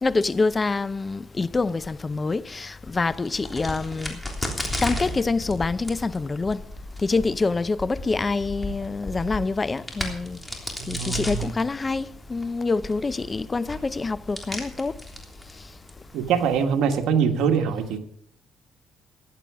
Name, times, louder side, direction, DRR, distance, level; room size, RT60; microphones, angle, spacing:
voice 1, 0.0-4.2 4.8-6.6 7.0-10.4 10.9-14.9, left 3 dB, 25° left, 0.5 m, -26 dB
Crack, 3.1-16.3, left 1 dB, 10° left, 3.4 m, -35 dB
voice 2, 10.8-11.5 16.1-18.0, right 7 dB, 85° right, 1.6 m, -23 dB
15.5 x 11.0 x 4.9 m
cardioid pair, 100°, 0 cm